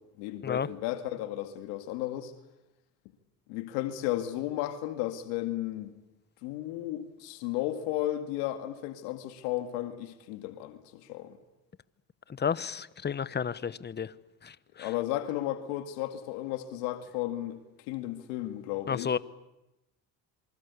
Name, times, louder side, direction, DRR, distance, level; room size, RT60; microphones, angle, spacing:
voice 1, 0.2-2.3 3.5-5.9 6.4-11.4 14.8-17.6 17.9-19.1, left 14 dB, 85° left, 2.1 m, -34 dB
voice 2, 12.4-14.1 14.4-14.9 18.9-19.2, left 7 dB, 25° left, 1.1 m, -31 dB
27.0 x 25.0 x 8.4 m
supercardioid pair, 90°, 39 cm